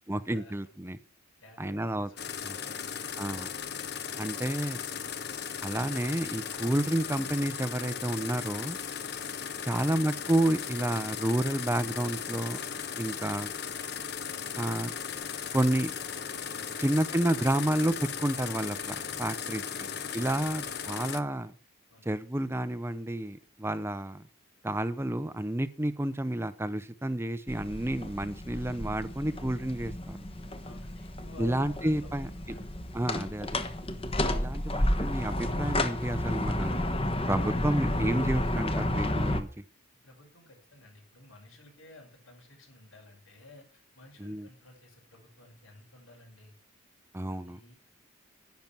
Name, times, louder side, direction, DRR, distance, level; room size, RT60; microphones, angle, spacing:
voice 1, 0.1-1.0 1.6-2.1 2.5-2.6 3.2-3.5 4.2-4.8 5.6-8.8 9.6-12.6 13.0-13.5 14.6-14.9 15.5-15.9 16.8-17.9 18.2-19.6 20.1-21.5 22.1-24.2 24.6-30.2 31.4-32.3 32.9-33.6 34.3-36.9 37.3-39.5 44.2-44.5 47.1-47.6, right 1 dB, 10° right, 0.6 m, -30 dB
voice 2, 1.4-2.9 4.9-5.2 16.5-17.1 19.4-20.2 20.4-21.1 21.9-22.1 30.6-32.7 33.9-34.1 40.0-46.5 47.3-47.7, left 2 dB, 85° left, 5.7 m, -54 dB
sound 1, 2.2-21.2, left 7 dB, 55° left, 1.0 m, -37 dB
sound 2, 27.5-39.4, left 1 dB, 30° left, 1.1 m, -31 dB
11.0 x 10.5 x 6.0 m
head